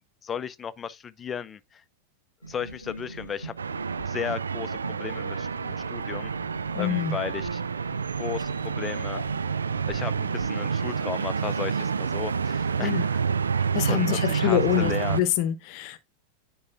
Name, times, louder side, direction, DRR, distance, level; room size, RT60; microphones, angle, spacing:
voice 1, 0.0-1.8 2.5-3.5 4.1-6.3 6.8-7.6 8.1-9.2 9.9-12.9 13.6-15.2, left 7 dB, 20° left, 0.5 m, -35 dB
sound 1, 2.4-11.1, right 2 dB, 90° right, 1.1 m, -42 dB
sound 2, 3.6-15.2, right 6 dB, 70° right, 0.4 m, -28 dB
sound 3, 6.7-6.9 9.1-9.3 10.1-10.2, left 7 dB, 65° left, 0.6 m, -41 dB
voice 2, 6.7-7.2 12.8-13.1 13.7-16.0, left 12 dB, 45° left, 0.9 m, -26 dB
9.7 x 4.7 x 2.6 m
figure-of-eight pair, 90°, 0 cm